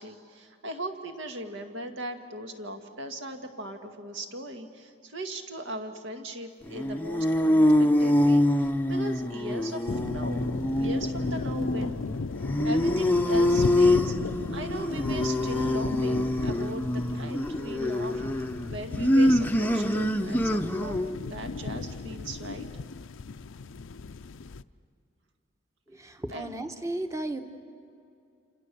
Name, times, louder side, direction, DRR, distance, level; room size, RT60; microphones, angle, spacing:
voice 1, 0.0-10.4 10.8-12.0 12.6-14.1 14.5-18.2 18.7-22.7 26.3-26.6, right 1 dB, 75° right, 5 dB, 2.0 m, -38 dB
sound 1, 6.7-21.2, left 1 dB, 10° left, 0.6 m, -25 dB
sound 2, 9.9-24.6, left 4 dB, 75° left, 0.5 m, -36 dB
voice 2, 25.9-27.4, right 1 dB, 15° right, 7 dB, 1.1 m, -34 dB
28.0 x 28.0 x 6.9 m, 2.6 s
head